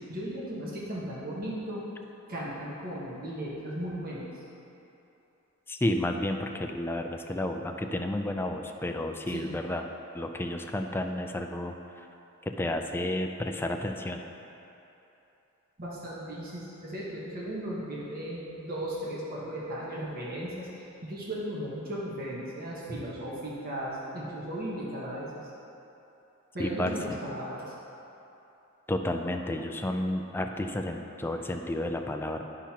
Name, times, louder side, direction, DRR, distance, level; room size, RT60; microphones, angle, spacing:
voice 1, 0.0-1.9 2.3-4.4 9.3-9.5 15.8-25.5 26.5-27.8, right 1 dB, 45° right, -6 dB, 1.2 m, -36 dB
voice 2, 5.7-9.8 10.1-11.7 12.5-14.2 26.6-26.9 28.9-32.4, left 1 dB, 10° left, 4 dB, 0.3 m, -31 dB
10.0 x 5.9 x 2.9 m, 2.9 s
head